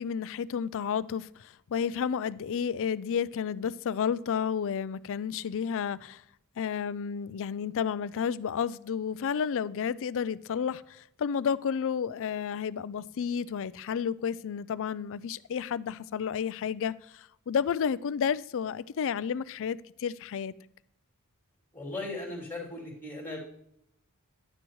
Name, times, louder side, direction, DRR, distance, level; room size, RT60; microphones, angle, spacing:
voice 1, 0.0-6.2 6.6-20.5, left 7 dB, 60° left, 0.4 m, -31 dB
voice 2, 21.7-23.4, left 2 dB, 10° left, 3.0 m, -37 dB
11.0 x 9.8 x 3.1 m
head